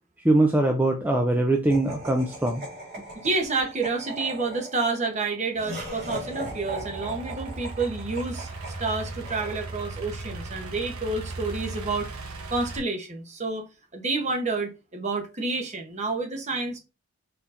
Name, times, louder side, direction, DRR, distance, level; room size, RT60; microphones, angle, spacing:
voice 1, 0.2-2.6, right 2 dB, 10° right, 0.4 m, -22 dB
Laughter, 1.7-10.1, right 1 dB, 45° right, 2.3 m, -39 dB
voice 2, 3.2-13.7 13.9-16.8, right 3 dB, 30° right, 0.9 m, -29 dB
Idling / Accelerating revving vroom, 5.7-12.8, right 3 dB, 85° right, 1.0 m, -38 dB
4.4 x 4.1 x 2.5 m
head